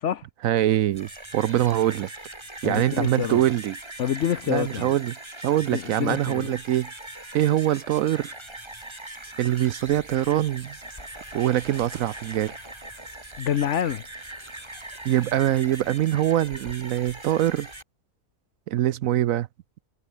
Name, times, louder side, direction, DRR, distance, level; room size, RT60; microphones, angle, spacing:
voice 1, 0.4-2.1 2.6-3.8 4.5-5.1 5.4-6.9 7.3-8.3 9.4-10.8 11.3-12.5 15.0-17.7 18.7-19.5, right 13 dB, 70° right, 0.9 m, -23 dB
sound 1, 0.8-17.8, right 1 dB, 15° right, 2.7 m, -41 dB
voice 2, 2.6-3.4 4.0-4.9 5.7-6.5 13.4-14.0, left 9 dB, 60° left, 0.9 m, -27 dB
Water, 9.9-17.8, left 1 dB, 25° left, 4.7 m, -53 dB
omnidirectional pair, 1.6 m